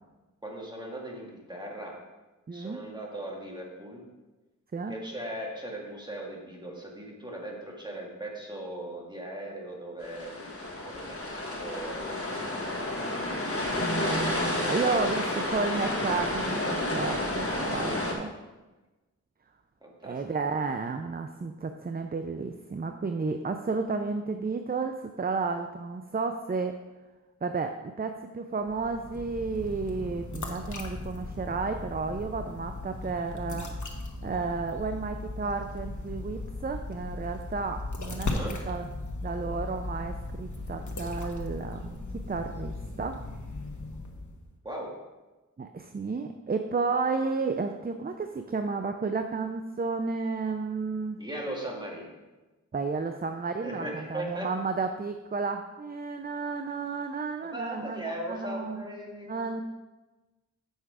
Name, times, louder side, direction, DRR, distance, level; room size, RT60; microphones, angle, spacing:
voice 1, 0.4-2.0 2.5-4.0 4.9-12.1 12.5-12.9 14.9-15.1 19.8-20.2 38.2-38.5 44.6-44.9 51.2-52.2 53.6-54.5 57.5-59.6, right 1 dB, 15° right, -2 dB, 2.0 m, -38 dB
voice 2, 2.5-2.8 4.7-5.0 13.7-15.2 15.5-18.3 20.0-26.8 27.4-33.7 34.2-38.3 38.7-38.9 39.2-42.0 42.3-43.2 45.6-51.2 52.7-58.8 59.3-59.6, right 4 dB, 30° right, 6 dB, 0.5 m, -32 dB
sound 1, 10.0-18.1, left 1 dB, 50° left, 1.6 m, -31 dB
sound 2, 28.6-44.5, left 2 dB, 70° left, 1.2 m, -37 dB
8.0 x 5.9 x 4.9 m, 1.2 s
wide cardioid pair, 65°, 30 cm